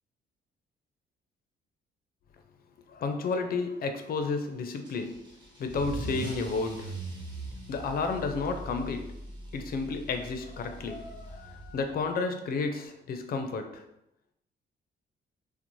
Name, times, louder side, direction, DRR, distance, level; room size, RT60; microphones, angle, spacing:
voice 1, 2.9-5.2 5.6-6.9 7.7-9.2 9.5-13.8, left 4 dB, 50° left, 6 dB, 0.4 m, -32 dB
Car / Engine starting / Accelerating revving vroom, 4.8-12.0, right 2 dB, 20° right, 0.9 m, -41 dB
2.6 x 2.0 x 2.9 m, 0.82 s
cardioid pair, 90°, 20 cm